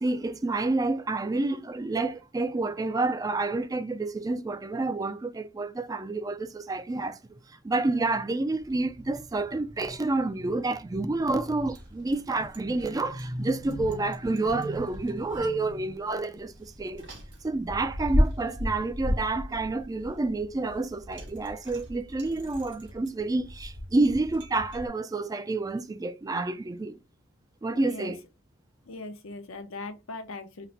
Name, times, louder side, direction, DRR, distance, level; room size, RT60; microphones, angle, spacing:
voice 1, 0.0-7.4 7.6-17.1 17.4-27.0 27.6-28.2, right 2 dB, 20° right, 0.3 m, -29 dB
Bicycle, 8.6-24.9, equal, 65° right, 1.6 m, -35 dB
voice 2, 27.7-28.1 28.9-30.7, left 3 dB, 85° left, 0.8 m, -39 dB
4.0 x 2.1 x 4.1 m
head